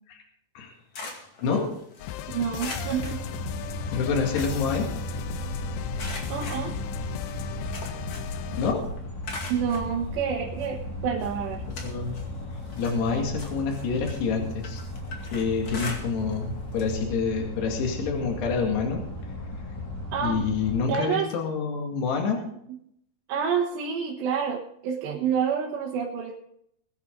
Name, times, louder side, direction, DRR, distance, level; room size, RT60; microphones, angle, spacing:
sound 1, 0.6-2.1 2.6-3.9 4.2-5.5 6.0-8.5 8.8-9.9 10.6-10.7 11.2-12.3 12.6-16.4 16.7-17.0 17.3-17.4 18.6-18.7, left 3 dB, 40° left, 2.7 m, -41 dB
sound 2, 2.0-8.7, left 12 dB, 90° left, 3.0 m, -37 dB
voice 1, 2.3-3.2 6.3-6.7 9.5-11.6 20.1-20.4 20.9-21.3 23.3-26.3, right 7 dB, 80° right, -2 dB, 3.4 m, -28 dB
sound 3, 2.7-20.8, left 1 dB, 5° left, 3.6 m, -35 dB
voice 2, 3.9-4.9 8.6-8.8 11.6-12.2 12.8-14.8 15.3-19.0 20.2-22.4, left 5 dB, 70° left, 2 dB, 4.3 m, -27 dB
21.0 x 10.0 x 3.9 m, 0.70 s
omnidirectional pair, 4.9 m